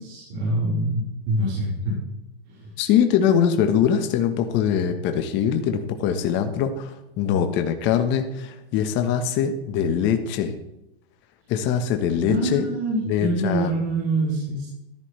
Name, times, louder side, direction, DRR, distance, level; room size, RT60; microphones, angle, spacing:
voice 1, 0.0-2.0 2.5-2.7 12.3-14.7, right 1 dB, 50° right, -6 dB, 4.6 m, -25 dB
voice 2, 2.8-10.5 11.5-12.7 13.1-13.7, left 8 dB, 35° left, 6 dB, 1.3 m, -22 dB
14.0 x 11.0 x 3.3 m, 0.88 s
hypercardioid pair, 125°, 31 cm